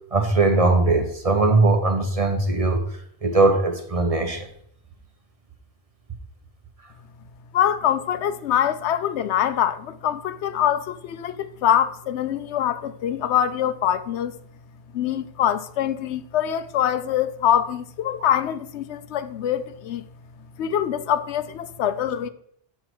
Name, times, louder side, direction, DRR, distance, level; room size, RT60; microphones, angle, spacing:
voice 1, 0.1-2.8 3.2-4.5, right 3 dB, 35° right, 0.8 m, -20 dB
voice 2, 7.5-14.4 14.9-20.0 20.6-22.3, left 10 dB, 85° left, 0.9 m, -24 dB
6.5 x 4.7 x 5.9 m
omnidirectional pair, 1.1 m